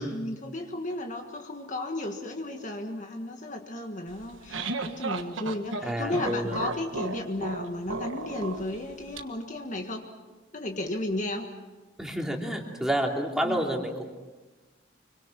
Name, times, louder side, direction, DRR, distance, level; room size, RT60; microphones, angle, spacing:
voice 1, 0.0-10.1 10.5-11.5 13.4-13.6, left 1 dB, 40° left, 3 dB, 1.7 m, -34 dB
sound 1, 4.1-9.2, right 3 dB, 90° right, 1.5 m, -35 dB
voice 2, 5.8-6.6 12.0-14.1, equal, 5° right, 0 dB, 2.9 m, -29 dB
26.0 x 24.5 x 6.0 m, 1.2 s
head